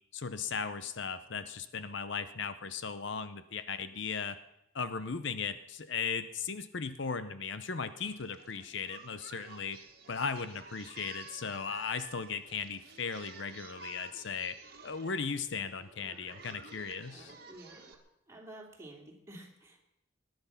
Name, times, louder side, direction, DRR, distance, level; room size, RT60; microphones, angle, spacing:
voice 1, 0.1-4.4 4.7-9.8 10.1-14.5 14.8-17.3, left 5 dB, 60° left, 12 dB, 0.7 m, -37 dB
Singing, 8.0-17.9, right 5 dB, 50° right, 1.8 m, -52 dB
voice 2, 17.1-18.0 18.3-19.8, right 1 dB, 15° right, 0 dB, 3.0 m, -51 dB
21.5 x 10.5 x 5.8 m, 0.84 s
head